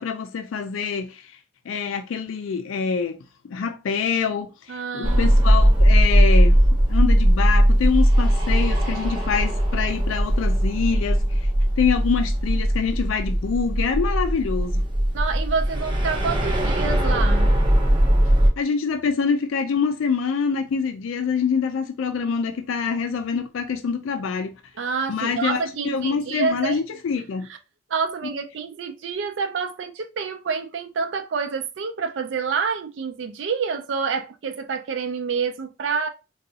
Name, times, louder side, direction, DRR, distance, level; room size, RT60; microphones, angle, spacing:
voice 1, 0.0-1.4 1.7-3.2 3.5-6.6 6.9-11.5 11.8-14.8 18.6-24.6 25.1-27.5, left 6 dB, 90° left, 0.4 m, -25 dB
voice 2, 4.7-5.3 15.1-17.6 24.8-26.8 27.9-36.1, right 5 dB, 70° right, 0.4 m, -28 dB
sound 1, 5.0-18.5, equal, 25° right, 0.7 m, -19 dB
3.9 x 2.3 x 2.7 m
head